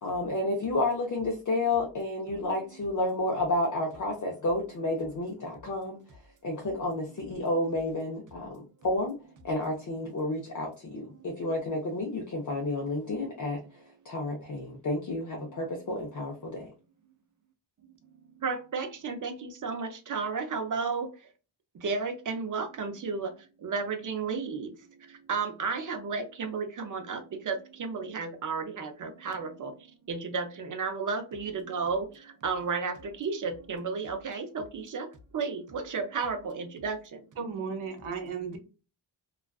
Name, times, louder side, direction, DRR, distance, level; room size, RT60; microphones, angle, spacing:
voice 1, 0.0-6.0 6.4-9.1 9.4-13.6 14.0-16.7, left 2 dB, 40° left, 0 dB, 0.5 m, -31 dB
voice 2, 18.4-21.1 21.8-23.3 23.6-24.7 25.3-29.7 30.1-32.1 32.4-35.1 35.3-37.0, right 5 dB, 40° right, 6 dB, 0.5 m, -32 dB
voice 3, 37.4-38.6, right 5 dB, 80° right, 5 dB, 0.8 m, -35 dB
2.3 x 2.3 x 2.2 m, 0.33 s
wide cardioid pair, 170°, 48 cm